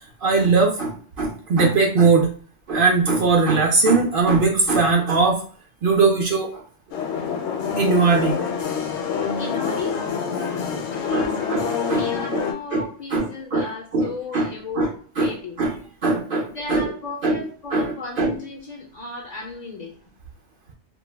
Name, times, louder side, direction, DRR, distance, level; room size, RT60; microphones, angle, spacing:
voice 1, 0.2-2.3 2.7-5.4 5.8-6.6 7.8-8.4 10.7-10.8 11.1-12.1 12.3-12.4 12.7-13.7 13.9-14.5 14.7-14.9 15.2-16.9 17.2-17.4 17.7-18.4, right 4 dB, 60° right, 1 dB, 0.6 m, -20 dB
sound 1, 6.9-12.5, left 6 dB, 70° left, 0.9 m, -26 dB
voice 2, 9.4-10.0 10.9-11.4 11.9-15.6 16.5-19.9, left 4 dB, 55° left, -1 dB, 0.5 m, -35 dB
2.3 x 2.1 x 3.2 m, 0.43 s
omnidirectional pair, 1.2 m